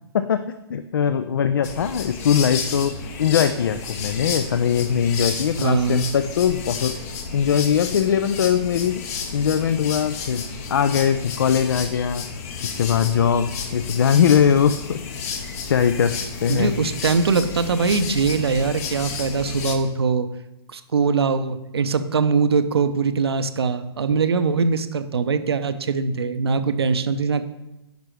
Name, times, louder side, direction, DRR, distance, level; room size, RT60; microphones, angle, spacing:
voice 1, 0.1-2.9 3.2-7.0 7.3-9.0 9.3-10.4 10.7-12.2 12.6-15.0 15.7-16.7 24.1-24.2, left 8 dB, 55° left, 11 dB, 0.4 m, -21 dB
sound 1, 1.6-19.8, left 5 dB, 35° left, 0.8 m, -32 dB
voice 2, 5.6-6.1 16.5-20.3 20.7-27.4, right 5 dB, 65° right, 11 dB, 0.6 m, -22 dB
10.0 x 5.4 x 3.1 m, 0.96 s
figure-of-eight pair, 120°, 14 cm